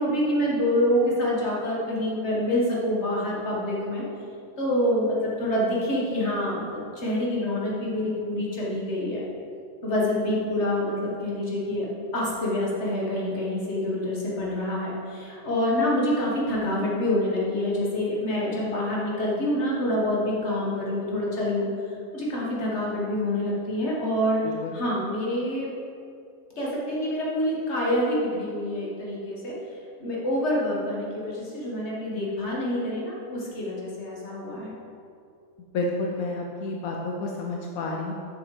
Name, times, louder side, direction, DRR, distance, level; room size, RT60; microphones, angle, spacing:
voice 1, 0.0-4.0 4.6-9.2 9.8-11.9 12.1-25.7 26.6-29.5 30.0-34.7, left 1 dB, 55° left, -5 dB, 2.0 m, -26 dB
voice 2, 35.7-38.1, left 2 dB, 85° left, 0 dB, 1.1 m, -30 dB
7.1 x 6.3 x 5.0 m, 2.5 s
omnidirectional pair, 1.4 m